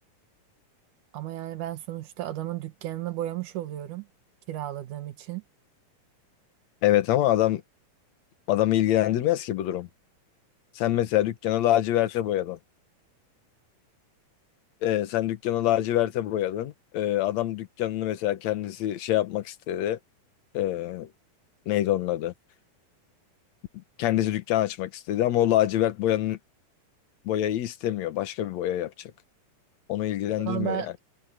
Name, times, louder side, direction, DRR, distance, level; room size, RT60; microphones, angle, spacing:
voice 1, 1.1-4.1 4.5-5.4 30.4-30.9, right 13 dB, 75° right, 2.9 m, -33 dB
voice 2, 6.8-7.6 8.5-9.9 10.8-12.6 14.8-20.0 20.5-21.1 21.7-22.3 24.0-26.4 27.3-29.1 29.9-30.8, left 13 dB, 65° left, 2.2 m, -25 dB
omnidirectional pair, 3.8 m